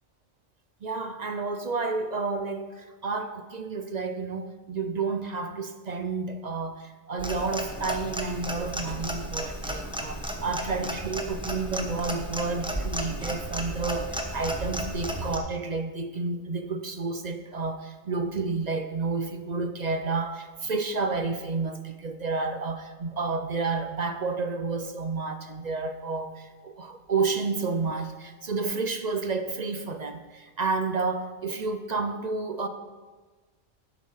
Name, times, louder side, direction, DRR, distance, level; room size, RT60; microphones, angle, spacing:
voice 1, 0.8-32.7, right 4 dB, 50° right, 8 dB, 0.5 m, -30 dB
Clock, 7.2-15.4, right 1 dB, 5° right, 1.0 m, -33 dB
11.0 x 8.1 x 5.6 m, 1.3 s
omnidirectional pair, 1.4 m